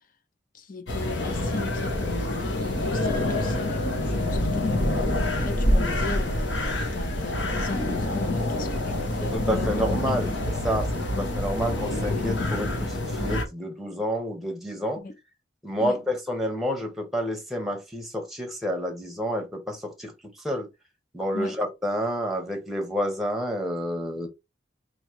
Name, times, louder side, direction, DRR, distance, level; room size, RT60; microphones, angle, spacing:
voice 1, 0.5-9.7 10.2-10.3 11.1-11.2 15.0-15.1 15.8-16.0 21.3-21.6, left 3 dB, 45° left, 0.6 m, -37 dB
sound 1, 0.9-13.4, left 1 dB, 80° left, 1.1 m, -26 dB
voice 2, 9.2-10.3 10.6-15.0 15.6-20.1 20.4-20.7 21.1-24.3, equal, ahead, 0.9 m, -29 dB
3.1 x 2.7 x 4.5 m
head